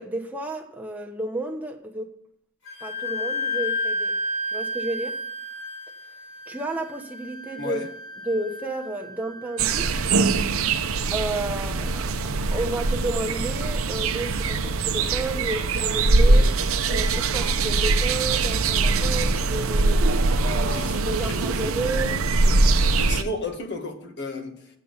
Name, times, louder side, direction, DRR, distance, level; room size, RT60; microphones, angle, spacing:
voice 1, 0.0-2.1 2.8-4.2 4.5-5.2 6.5-7.8 8.2-9.9 11.1-12.1 12.5-16.5 16.9-20.1 20.4-22.2, right 2 dB, 10° right, 1.1 m, -31 dB
Wind instrument woodwind instrument, 2.7-10.1, left 1 dB, 70° left, 3.8 m, -32 dB
sound 1, 9.6-23.2, right 3 dB, 75° right, 0.7 m, -22 dB
voice 2, 20.5-21.5 21.8-24.7, left 2 dB, 55° left, 1.6 m, -34 dB
8.4 x 7.3 x 8.1 m
head